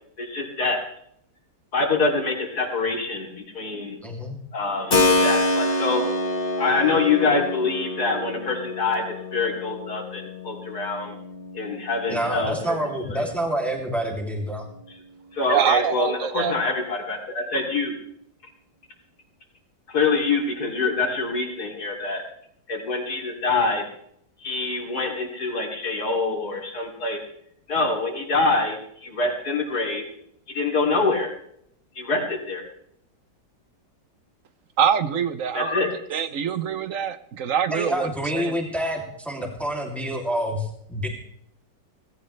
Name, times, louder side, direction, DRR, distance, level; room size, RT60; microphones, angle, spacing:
voice 1, 0.2-0.8 1.7-4.0 4.5-6.0 6.6-9.0 9.3-11.2 11.5-12.5 13.1-13.2 15.3-18.0 19.9-22.2 22.7-23.8 24.4-27.2 27.7-30.0 30.5-31.3 32.0-32.6 35.5-35.9, left 3 dB, 60° left, 1 dB, 3.5 m, -25 dB
voice 2, 4.0-4.4 12.1-14.7 37.7-41.1, equal, ahead, 1 dB, 2.6 m, -27 dB
Keyboard (musical), 4.9-13.5, left 2 dB, 35° left, 1.3 m, -27 dB
voice 3, 15.5-16.5 34.8-35.7 36.1-38.5, right 8 dB, 55° right, 13 dB, 1.0 m, -24 dB
17.5 x 16.5 x 3.3 m, 0.70 s
omnidirectional pair, 1.9 m